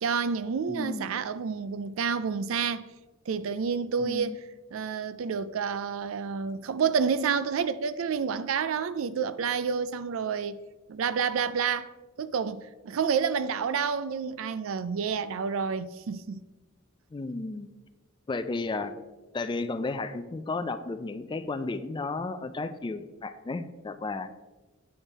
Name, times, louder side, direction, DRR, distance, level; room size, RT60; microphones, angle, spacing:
voice 1, 0.0-2.9 3.3-4.4 4.7-10.6 10.9-11.9 12.2-16.4, right 6 dB, 75° right, 0.4 m, -29 dB
voice 2, 0.7-1.1 4.0-4.4 17.1-17.7 18.3-18.9 19.3-24.3, left 3 dB, 20° left, 0.4 m, -33 dB
8.7 x 5.4 x 4.0 m
head